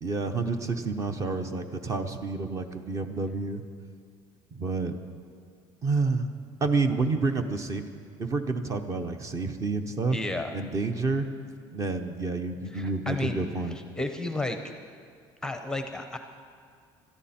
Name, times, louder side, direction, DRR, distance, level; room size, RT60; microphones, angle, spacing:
voice 1, 0.0-3.6 4.5-5.0 5.8-6.3 6.6-7.8 8.2-10.2 10.5-11.3 11.7-13.8, right 3 dB, 30° right, 7 dB, 0.9 m, -29 dB
voice 2, 10.1-10.5 12.7-13.4 14.0-14.6 15.4-16.2, left 2 dB, 5° left, 6 dB, 0.7 m, -32 dB
21.0 x 13.5 x 4.3 m, 2.2 s
cardioid pair, 155°, 11 cm